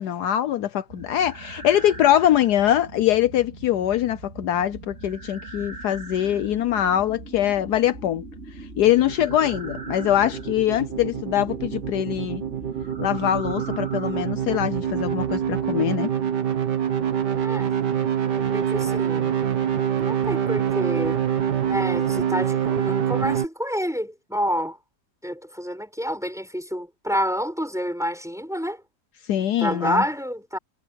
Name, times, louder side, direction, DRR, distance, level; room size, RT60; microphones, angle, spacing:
voice 1, 0.0-8.3 8.8-12.4 13.0-16.1 29.3-30.0, left 11 dB, 70° left, 1.2 m, -23 dB
sound 1, 0.9-15.8, right 2 dB, 40° right, 4.5 m, -40 dB
sound 2, 8.8-23.5, right 8 dB, 80° right, 2.2 m, -26 dB
voice 2, 17.4-17.7 18.5-19.3 20.0-21.2 21.7-24.8 25.2-28.8 29.6-30.6, equal, ahead, 5.6 m, -28 dB
omnidirectional pair, 1.8 m